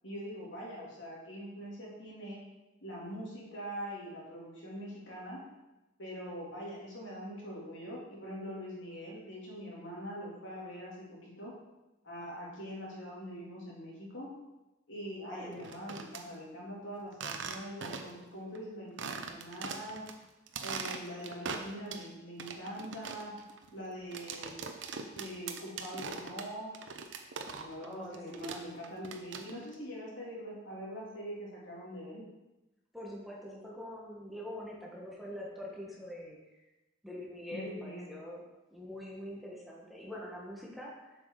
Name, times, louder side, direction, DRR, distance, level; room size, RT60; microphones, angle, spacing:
voice 1, 0.0-2.4 2.8-5.4 6.0-11.0 11.2-11.5 12.0-14.3 14.9-20.0 20.6-23.3 23.7-24.5 25.1-26.7 27.4-32.2 37.5-38.1, equal, 90° left, -6 dB, 3.4 m, -43 dB
voice 2, 15.1-15.7 27.8-28.6 32.9-36.4 37.0-38.4 38.7-41.1, equal, ahead, -4 dB, 1.6 m, -44 dB
sound 1, 15.5-16.2 17.1-18.2 18.5-18.6 19.0-20.1 20.5-22.1 22.4-27.9 28.1-29.7, right 5 dB, 75° right, 0.8 m, -41 dB
7.6 x 6.3 x 5.0 m, 1.0 s
head